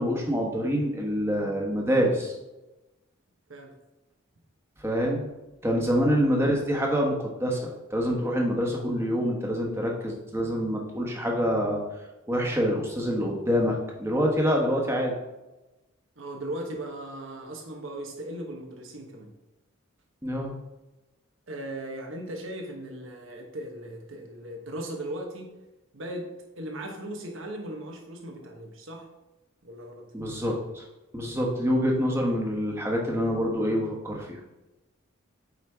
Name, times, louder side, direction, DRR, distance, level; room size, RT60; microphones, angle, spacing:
voice 1, 0.0-2.3 4.8-5.3 5.6-11.8 12.3-15.1 20.2-20.6 30.1-30.8 31.1-34.4, equal, 10° right, -1 dB, 1.1 m, -26 dB
voice 2, 16.2-19.3 21.5-25.6 25.9-29.1 29.6-30.1, right 1 dB, 65° right, 2 dB, 1.2 m, -38 dB
8.1 x 4.5 x 3.5 m, 1.0 s
head